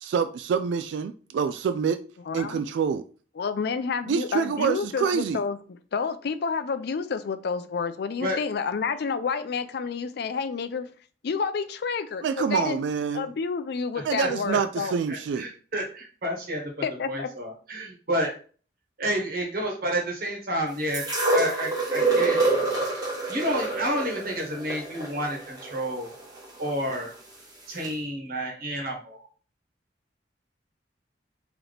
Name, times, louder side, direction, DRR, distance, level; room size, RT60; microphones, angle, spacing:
voice 1, 0.0-2.0 2.3-3.0 4.1-5.4 12.2-13.3 14.0-15.4, right 6 dB, 80° right, 0.3 m, -26 dB
voice 2, 2.3-2.6 3.4-5.6 5.9-10.9 11.2-12.8 13.1-15.0 16.8-17.3, left 5 dB, 65° left, 0.4 m, -29 dB
voice 3, 15.1-16.7 17.0-18.3 19.0-22.4 23.3-26.1 26.6-27.1 27.7-29.3, equal, 55° right, 1.3 m, -30 dB
sound 1, 20.9-27.0 27.8-27.9, right 3 dB, 20° right, 1.1 m, -26 dB
4.0 x 2.9 x 3.3 m
head